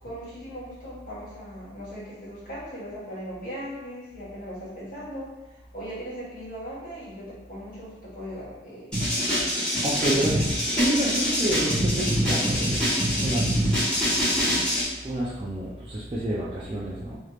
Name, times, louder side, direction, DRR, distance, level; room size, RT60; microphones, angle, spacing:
voice 1, 0.0-8.9 9.3-9.4, equal, 50° left, -10 dB, 1.4 m, -39 dB
sound 1, 8.9-14.8, equal, 5° left, 1.4 m, -24 dB
voice 2, 9.8-13.7 15.0-17.2, right 1 dB, 30° right, -8 dB, 0.4 m, -29 dB
3.2 x 3.1 x 2.4 m, 1.0 s
head